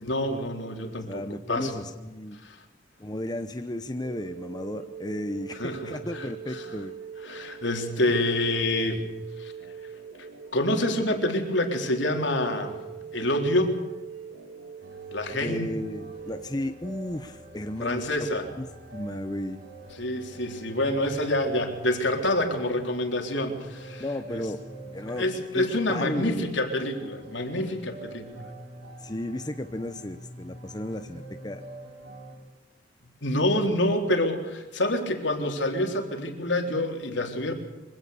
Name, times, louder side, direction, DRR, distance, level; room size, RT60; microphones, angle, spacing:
voice 1, 0.0-1.2 1.5-1.8 2.3-2.6 5.6-6.3 6.6-6.7 7.2-9.0 9.4-9.5 10.5-12.8 13.1-13.8 15.1-15.7 17.8-18.5 20.0-24.0 24.3-24.4 25.0-28.3 33.2-37.5, left 1 dB, 65° left, 4 dB, 3.8 m, -27 dB
voice 2, 1.1-2.4 3.0-6.9 15.3-18.3 18.6-18.7 18.9-19.6 24.0-24.6 24.9-25.2 25.5-26.5 29.0-31.6, left 1 dB, 20° left, 8 dB, 0.8 m, -34 dB
sound 1, 4.0-16.4, right 7 dB, 85° right, 2.9 m, -42 dB
sound 2, 14.8-32.4, right 1 dB, 65° right, 7.0 m, -46 dB
24.5 x 17.0 x 6.9 m, 1.1 s
head